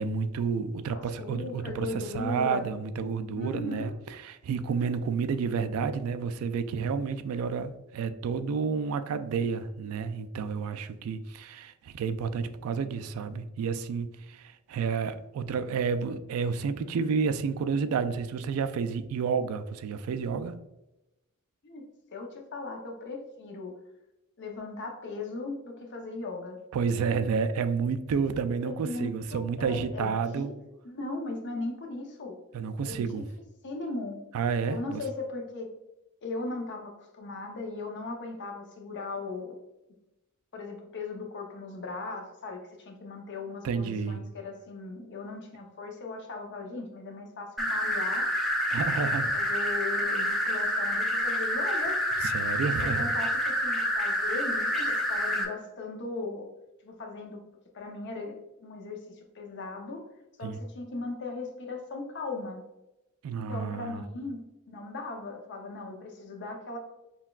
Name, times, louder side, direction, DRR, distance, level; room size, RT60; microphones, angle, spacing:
voice 1, 0.0-20.6 26.7-30.5 32.5-33.2 34.3-35.0 43.6-44.2 48.7-49.3 52.2-53.1 60.4-60.6 63.2-64.0, right 5 dB, 70° right, 12 dB, 0.3 m, -30 dB
voice 2, 0.9-2.7 3.3-3.9 21.6-21.8 22.1-23.7 24.4-26.6 28.6-30.6 30.8-32.4 32.8-33.2 33.6-34.2 34.7-35.7 36.2-39.6 40.5-48.3 49.0-52.0 52.6-56.5 56.8-57.4 57.7-60.0 60.4-62.6 63.4-66.8, left 3 dB, 55° left, 2 dB, 0.6 m, -38 dB
sound 1, 47.6-55.5, equal, ahead, 0.5 m, -28 dB
5.6 x 2.3 x 2.3 m, 0.95 s
head